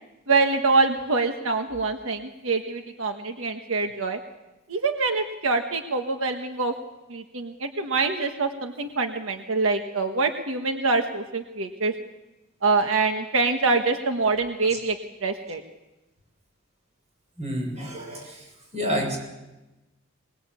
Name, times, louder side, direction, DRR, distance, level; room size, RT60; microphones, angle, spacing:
voice 1, 0.3-4.2 4.7-6.7 7.1-11.9 12.6-15.0 15.2-15.6, right 3 dB, 85° right, 5 dB, 1.4 m, -25 dB
voice 2, 17.4-18.4 18.7-19.2, equal, 35° right, 1 dB, 7.4 m, -29 dB
22.5 x 20.5 x 8.4 m, 1.0 s
head